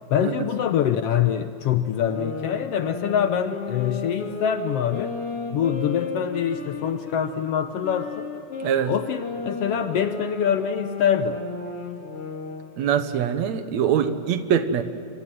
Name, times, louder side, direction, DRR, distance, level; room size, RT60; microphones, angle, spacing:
voice 1, 0.1-5.2 5.5-8.3 8.9-11.4, left 9 dB, 70° left, 10 dB, 1.6 m, -24 dB
sound 1, 1.9-7.3 7.8-12.7, left 4 dB, 50° left, 3.1 m, -34 dB
voice 2, 8.6-8.9 12.8-14.8, right 8 dB, 70° right, 10 dB, 2.3 m, -23 dB
26.0 x 25.5 x 7.7 m, 2.7 s
omnidirectional pair, 3.4 m